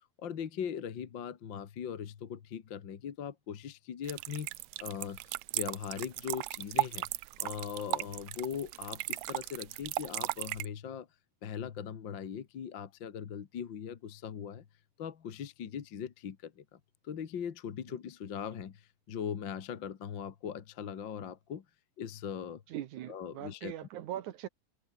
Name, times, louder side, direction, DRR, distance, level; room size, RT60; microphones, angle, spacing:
voice 1, 0.2-4.5 4.8-7.1 7.4-11.1 11.4-14.6 15.0-21.6 22.0-22.6 23.1-23.7, left 8 dB, 45° left, 1.7 m, -40 dB
sound 1, 4.0-10.7, right 20 dB, 85° right, 1.7 m, -36 dB
voice 2, 22.7-24.5, right 12 dB, 70° right, 2.4 m, -40 dB
omnidirectional pair, 3.9 m